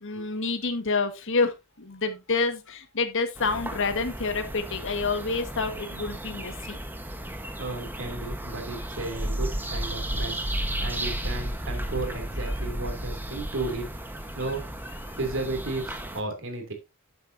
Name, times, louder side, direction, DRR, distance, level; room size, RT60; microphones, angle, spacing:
voice 1, 0.0-6.8 15.1-15.2, left 4 dB, 60° left, 1.6 m, -28 dB
sound 1, 3.4-16.2, right 1 dB, 10° right, 1.2 m, -33 dB
voice 2, 7.6-10.4 10.8-13.9 14.3-14.7 15.2-16.7, right 2 dB, 60° right, 2.9 m, -34 dB
11.5 x 7.9 x 2.7 m
head